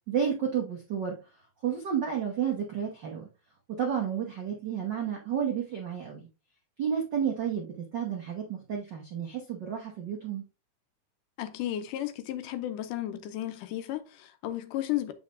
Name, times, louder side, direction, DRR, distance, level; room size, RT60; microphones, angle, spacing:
voice 1, 0.1-1.2 1.6-3.3 3.8-6.3 6.8-10.4, right 8 dB, 80° right, 1.0 m, -31 dB
voice 2, 11.4-15.1, left 13 dB, 80° left, 2.3 m, -33 dB
7.6 x 5.6 x 2.5 m
omnidirectional pair, 3.8 m